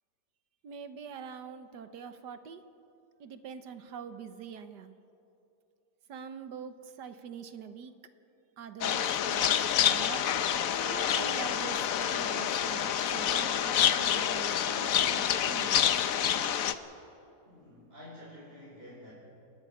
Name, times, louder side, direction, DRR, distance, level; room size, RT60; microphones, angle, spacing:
voice 1, 0.6-2.6 3.2-4.9 6.1-7.9 8.6-9.5 9.7-10.2 10.8-15.8, right 7 dB, 80° right, 10 dB, 1.7 m, -44 dB
sound 1, 8.8-16.7, left 9 dB, 60° left, 1.1 m, -28 dB
voice 2, 17.4-19.1, left 1 dB, 35° right, -6 dB, 4.8 m, -49 dB
28.5 x 10.5 x 9.8 m, 2.8 s
omnidirectional pair, 1.8 m